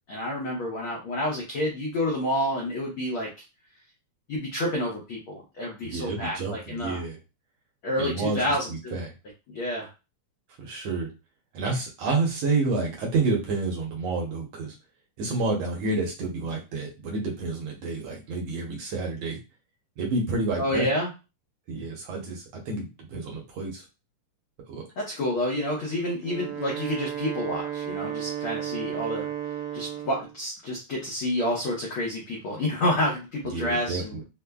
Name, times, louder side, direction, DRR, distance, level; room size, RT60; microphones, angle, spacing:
voice 1, 0.1-3.3 4.3-7.0 7.8-9.0 9.5-9.9 20.6-21.1 25.0-29.3 29.7-34.2, left 1 dB, 75° left, -3 dB, 1.2 m, -29 dB
voice 2, 5.8-7.2 8.0-9.1 10.6-11.1 11.5-14.7 15.2-19.4 20.0-20.9 21.7-23.8 24.7-24.8 33.5-34.2, right 3 dB, 70° right, -1 dB, 1.8 m, -29 dB
Wind instrument woodwind instrument, 26.1-30.3, right 10 dB, 85° right, 2.1 m, -33 dB
4.8 x 2.1 x 2.3 m, 0.28 s
omnidirectional pair, 3.5 m